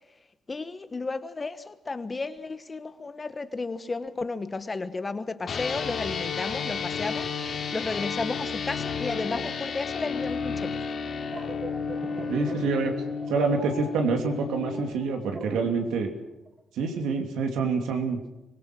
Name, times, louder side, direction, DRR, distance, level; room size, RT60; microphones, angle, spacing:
voice 1, 0.5-10.8, left 3 dB, 25° left, 1.2 m, -33 dB
sound 1, 5.5-14.9, left 5 dB, 50° left, 3.0 m, -32 dB
sound 2, 11.2-16.5, right 2 dB, 40° right, 4.7 m, -39 dB
voice 2, 12.3-12.9 13.3-16.1 16.8-18.2, right 4 dB, 85° right, 3.0 m, -27 dB
25.0 x 18.0 x 6.2 m
cardioid pair, 90°, 0 cm